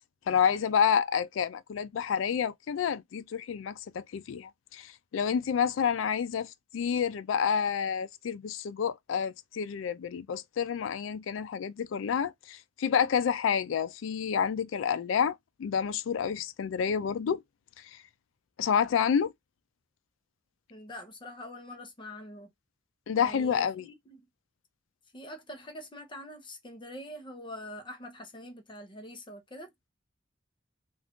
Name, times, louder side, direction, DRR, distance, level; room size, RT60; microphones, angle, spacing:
voice 1, 0.3-17.4 18.6-19.3 23.1-23.9, left 7 dB, 80° left, 0.3 m, -29 dB
voice 2, 20.7-22.5 23.1-24.2 25.1-29.7, left 1 dB, 25° left, 0.7 m, -44 dB
2.5 x 2.4 x 3.5 m
head